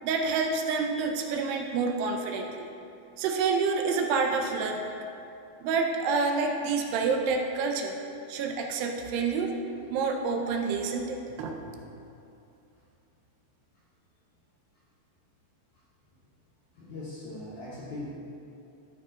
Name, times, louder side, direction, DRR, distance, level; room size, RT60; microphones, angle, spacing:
voice 1, 0.0-2.5 3.2-4.9 5.6-8.0 8.3-9.6 9.9-11.6, right 4 dB, 80° right, 2 dB, 2.6 m, -28 dB
voice 2, 16.7-18.1, left 2 dB, 75° left, -8 dB, 1.7 m, -40 dB
14.5 x 5.5 x 3.7 m, 2.7 s
omnidirectional pair, 5.1 m